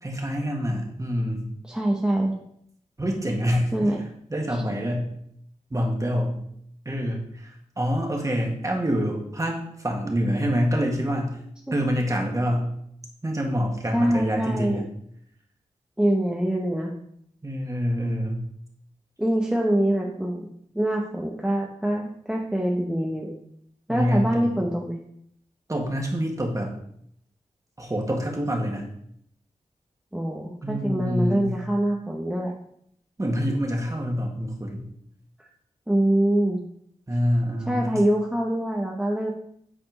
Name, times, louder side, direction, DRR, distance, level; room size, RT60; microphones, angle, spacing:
voice 1, 0.0-1.5 3.0-3.9 4.3-5.1 5.7-6.4 6.9-11.4 11.7-12.7 13.2-14.9 17.4-18.4 23.9-24.6 25.7-26.7 27.8-28.8 30.6-31.6 33.2-34.9 37.1-38.0, equal, 25° right, 0 dB, 1.8 m, -26 dB
voice 2, 1.6-2.3 3.7-4.0 11.7-11.8 13.9-14.8 16.0-16.9 19.2-23.4 23.9-25.0 30.1-32.5 35.4-35.5 35.9-36.6 37.7-39.3, right 1 dB, 5° right, -1 dB, 0.9 m, -24 dB
8.8 x 4.3 x 5.3 m, 0.70 s
wide cardioid pair, 90°, 13 cm